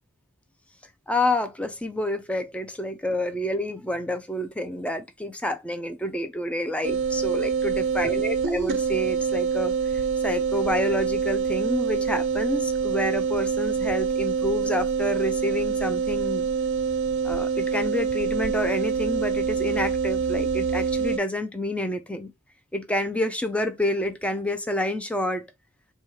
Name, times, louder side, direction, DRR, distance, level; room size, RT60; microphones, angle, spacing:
voice 1, 1.1-16.5 17.2-22.3 22.7-25.5, left 1 dB, 5° left, 0.5 m, -28 dB
sound 1, 6.8-21.2, right 6 dB, 55° right, 0.5 m, -26 dB
4.3 x 2.3 x 4.6 m
head